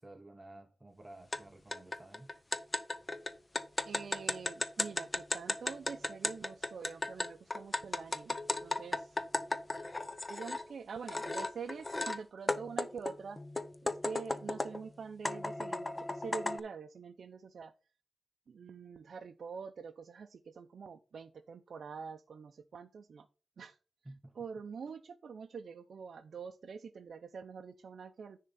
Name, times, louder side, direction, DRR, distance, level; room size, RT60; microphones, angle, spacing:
voice 1, 0.0-2.3 24.0-24.3, right 1 dB, 15° right, 0.7 m, -53 dB
sound 1, 1.3-1.4 1.7-10.6 11.1-12.2 12.5-14.8 15.3-16.6, left 2 dB, 20° left, 0.6 m, -35 dB
voice 2, 3.9-9.2 10.3-13.4 13.8-17.7 18.5-23.3 23.6-23.8 24.3-28.4, right 5 dB, 65° right, 0.6 m, -46 dB
10.0 x 3.7 x 5.6 m
wide cardioid pair, 180°, 0 cm